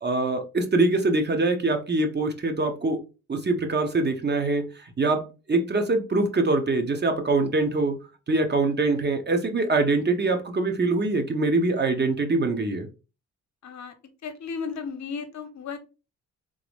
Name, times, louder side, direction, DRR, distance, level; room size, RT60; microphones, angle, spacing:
voice 1, 0.0-3.0 3.3-8.0 8.3-12.9, right 3 dB, 35° right, 1.1 m, -24 dB
voice 2, 13.6-13.9 14.2-15.8, left 5 dB, 60° left, 1.0 m, -34 dB
3.8 x 3.0 x 3.4 m
cardioid pair, 75°, 31 cm